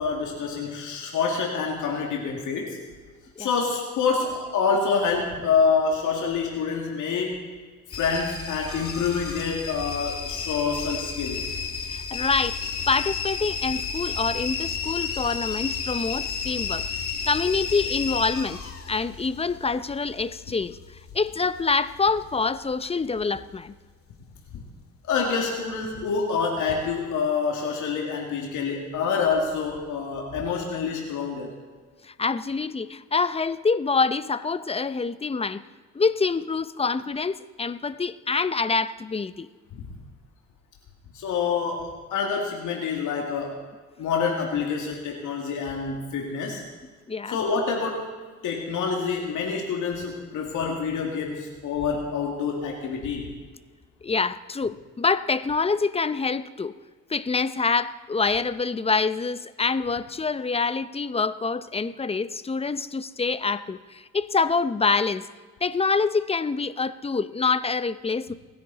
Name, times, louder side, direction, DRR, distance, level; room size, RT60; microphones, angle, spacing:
voice 1, 0.0-2.8 3.4-7.5 7.9-11.5 24.5-24.6 25.1-31.5 39.8-39.9 41.1-43.6 44.0-46.6 47.3-48.1 48.4-53.3, left 5 dB, 80° left, 0 dB, 2.3 m, -27 dB
sound 1, 7.9-22.8 23.0-23.7 24.2-24.7 25.1-25.2, left 6 dB, 50° left, 1.9 m, -32 dB
voice 2, 11.9-16.9 17.3-18.6 18.9-20.8 21.1-23.7 32.1-35.6 35.9-39.5 47.1-47.4 54.0-56.7 57.1-65.3 65.6-68.3, left 4 dB, 20° left, 14 dB, 0.6 m, -26 dB
28.5 x 10.5 x 4.1 m, 1.5 s
cardioid pair, 90°, 30 cm